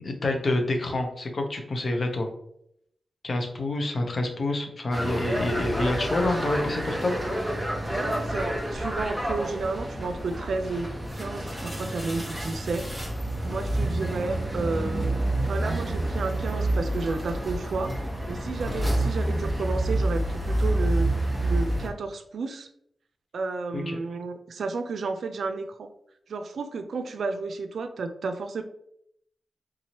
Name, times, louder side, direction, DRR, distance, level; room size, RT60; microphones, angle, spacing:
voice 1, 0.0-2.3 3.2-7.6 23.7-24.0, left 2 dB, 55° left, 4 dB, 0.7 m, -27 dB
sound 1, 4.9-21.9, right 1 dB, ahead, 0.9 m, -28 dB
voice 2, 7.9-10.9 11.1-12.9 13.4-15.1 15.4-17.9 18.3-22.7 23.3-25.9 26.3-28.6, right 3 dB, 85° right, 8 dB, 0.4 m, -32 dB
3.6 x 3.0 x 2.8 m, 0.72 s
wide cardioid pair, 85°, 0 cm